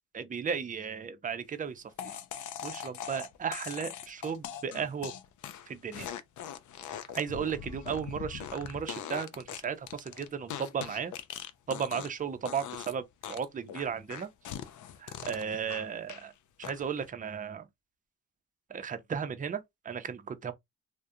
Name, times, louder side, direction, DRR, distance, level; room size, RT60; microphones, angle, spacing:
voice 1, 0.1-2.1 2.6-5.1 5.7-6.1 7.1-11.1 11.7-14.3 15.0-16.3 16.6-17.6 18.7-20.5, right 7 dB, 25° right, 0.4 m, -35 dB
sound 1, 2.0-12.2 12.5-12.9 13.2-16.3 16.6-17.1, left 9 dB, 55° left, 0.5 m, -41 dB
2.3 x 2.2 x 2.7 m
supercardioid pair, 55°, 35 cm